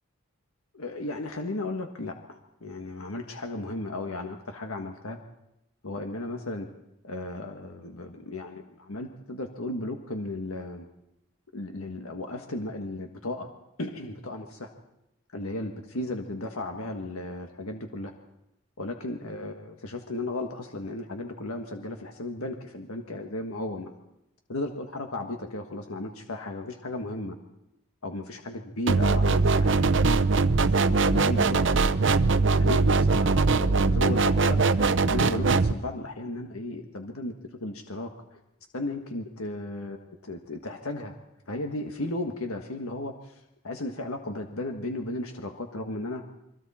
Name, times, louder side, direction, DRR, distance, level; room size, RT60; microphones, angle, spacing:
voice 1, 0.7-5.2 5.8-6.7 7.0-10.8 11.5-13.5 13.8-14.7 15.3-18.1 18.8-23.9 24.5-27.4 28.0-30.3 30.7-31.6 32.5-37.3 37.6-38.4 38.7-41.1 41.5-46.2, left 2 dB, 90° left, 4 dB, 1.6 m, -35 dB
sound 1, 28.9-35.7, right 3 dB, 60° right, 0.7 m, -22 dB
29.5 x 23.5 x 4.3 m, 0.85 s
head